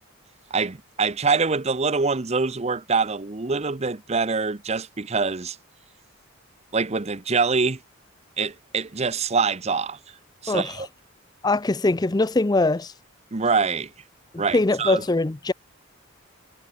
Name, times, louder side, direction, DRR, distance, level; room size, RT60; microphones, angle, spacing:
voice 1, 0.5-5.6 6.7-7.8 8.4-10.0 10.4-10.9 13.3-13.9 14.4-15.0, right 4 dB, 30° right, 0.8 m, -24 dB
voice 2, 11.4-12.9 14.3-15.5, left 2 dB, 20° left, 0.5 m, -22 dB
head